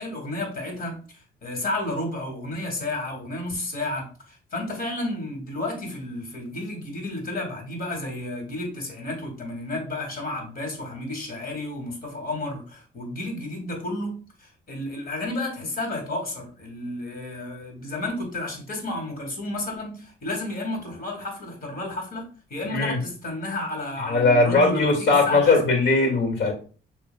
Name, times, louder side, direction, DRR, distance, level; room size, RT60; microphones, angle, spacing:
voice 1, 0.0-14.1 14.4-25.7, left 2 dB, 45° left, 1 dB, 2.3 m, -32 dB
voice 2, 24.0-26.5, left 3 dB, 60° left, 3 dB, 2.1 m, -20 dB
7.0 x 3.2 x 2.3 m, 0.37 s
cardioid pair, 90°, 20 cm